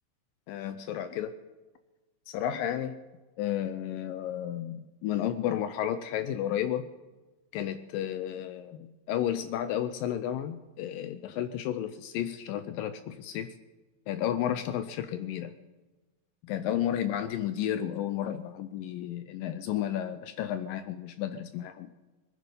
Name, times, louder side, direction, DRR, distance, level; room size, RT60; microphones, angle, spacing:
voice 1, 0.5-1.4 2.3-3.0 3.4-6.9 7.5-13.6 14.1-15.5 16.4-21.9, left 11 dB, 80° left, 11 dB, 2.2 m, -32 dB
23.5 x 10.0 x 5.2 m, 1.2 s
omnidirectional pair, 4.3 m